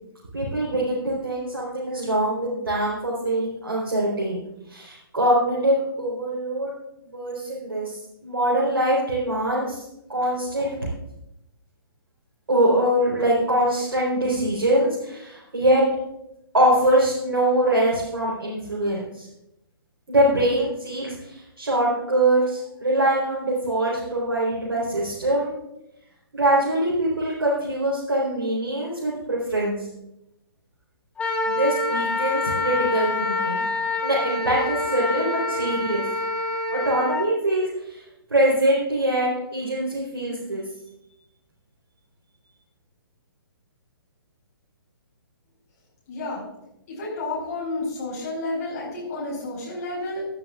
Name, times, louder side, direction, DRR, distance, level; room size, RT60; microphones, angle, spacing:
voice 1, 0.3-4.4 4.7-6.7 7.1-9.8 10.1-10.7 12.5-15.8 16.5-19.3 20.1-25.5 26.3-29.8 31.4-33.7 34.0-36.0 36.7-38.0 38.3-40.6, right 1 dB, 75° right, -5 dB, 4.1 m, -23 dB
Wind instrument woodwind instrument, 31.2-37.2, left 2 dB, 10° left, 1.7 m, -26 dB
voice 2, 46.1-46.4 46.9-50.3, left 2 dB, 40° left, -5 dB, 5.1 m, -30 dB
17.0 x 10.5 x 2.5 m, 0.86 s
figure-of-eight pair, 130°, 12 cm